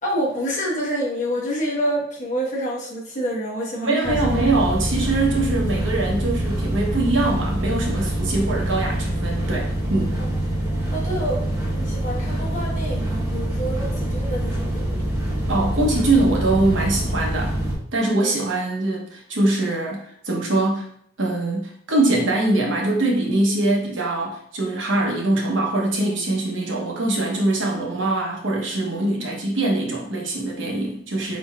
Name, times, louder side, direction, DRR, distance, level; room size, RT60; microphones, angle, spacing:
voice 1, 0.0-4.3 10.9-11.4 11.7-15.0 18.1-18.3, equal, 40° left, -4 dB, 1.1 m, -27 dB
voice 2, 3.8-10.2 15.5-17.5 17.9-20.9 21.2-31.4, right 2 dB, 75° right, -1 dB, 1.0 m, -23 dB
sound 1, 4.0-17.8, right 1 dB, 15° right, 0.9 m, -25 dB
4.4 x 3.9 x 2.4 m, 0.67 s
head